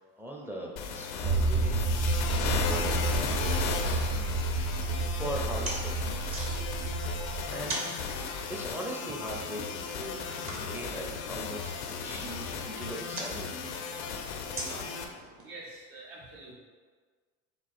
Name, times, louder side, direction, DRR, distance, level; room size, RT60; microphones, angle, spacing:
voice 1, 0.2-4.8 5.1-6.2 7.5-7.8 8.5-10.2 10.6-13.7, equal, 5° right, -1 dB, 0.6 m, -40 dB
sound 1, 0.8-15.0, left 5 dB, 75° left, 0.6 m, -35 dB
sound 2, 1.2-7.4, right 3 dB, 55° right, 1.2 m, -30 dB
sound 3, 3.4-15.4, right 2 dB, 35° right, 1.0 m, -44 dB
voice 2, 15.4-16.5, right 2 dB, 70° right, -5 dB, 1.5 m, -46 dB
3.8 x 2.3 x 4.3 m, 1.5 s
supercardioid pair, 85°, 37 cm